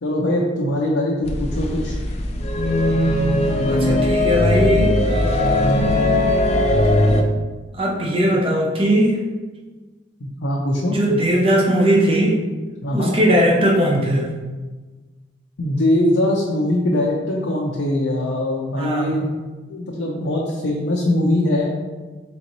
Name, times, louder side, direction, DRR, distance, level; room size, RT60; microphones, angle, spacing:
voice 1, 0.0-2.0 10.2-11.0 12.8-13.1 15.6-19.3 19.7-21.7, left 1 dB, 85° left, -3 dB, 0.6 m, -21 dB
sound 1, 1.2-7.2, left 1 dB, 35° left, 0.4 m, -19 dB
voice 2, 3.7-5.8 7.8-9.2 10.8-12.4 12.9-14.3 18.8-19.2, equal, 30° right, -2 dB, 0.6 m, -19 dB
4.0 x 3.7 x 3.0 m, 1.3 s
head